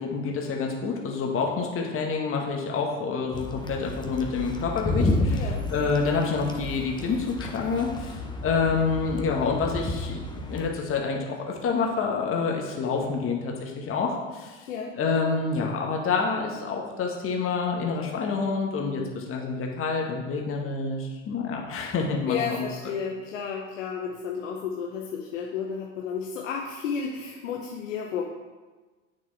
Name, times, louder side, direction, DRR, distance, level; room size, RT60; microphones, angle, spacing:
voice 1, 0.0-14.7 14.9-22.7, left 4 dB, 35° left, 1 dB, 1.7 m, -28 dB
sound 1, 3.3-10.7, left 2 dB, 10° left, 1.2 m, -31 dB
voice 2, 5.3-5.7 14.7-14.9 22.3-28.2, left 6 dB, 75° left, 0 dB, 1.1 m, -32 dB
8.7 x 6.7 x 4.2 m, 1.3 s
hypercardioid pair, 85°, 38 cm